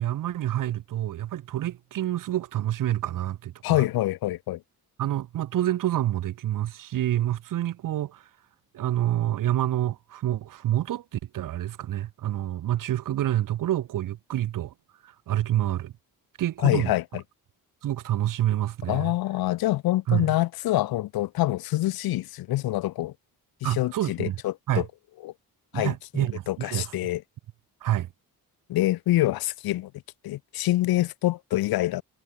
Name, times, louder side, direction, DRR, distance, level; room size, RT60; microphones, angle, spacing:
voice 1, 0.0-3.9 5.0-8.2 8.7-14.7 15.0-15.9 16.4-16.9 17.8-19.1 20.1-20.4 23.6-24.4 24.7-24.8 25.7-27.0 27.8-28.1, right 13 dB, 60° right, 0.6 m, -27 dB
voice 2, 3.6-4.6 16.6-17.2 18.9-23.1 23.6-24.9 25.2-25.3 25.7-27.2 28.7-29.9 30.2-32.0, left 16 dB, 75° left, 0.5 m, -26 dB
wide cardioid pair, 135°, 37 cm